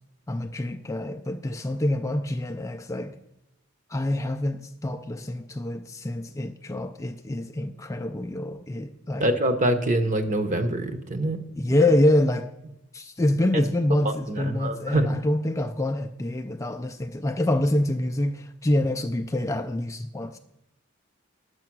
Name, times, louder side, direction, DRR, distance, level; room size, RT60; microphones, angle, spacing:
voice 1, 0.3-3.2 3.9-9.3 11.6-12.5 12.9-20.4, left 1 dB, 15° left, 0.4 m, -26 dB
voice 2, 9.2-11.4 14.0-15.1, right 1 dB, 35° right, 0.9 m, -25 dB
9.5 x 6.8 x 6.1 m
head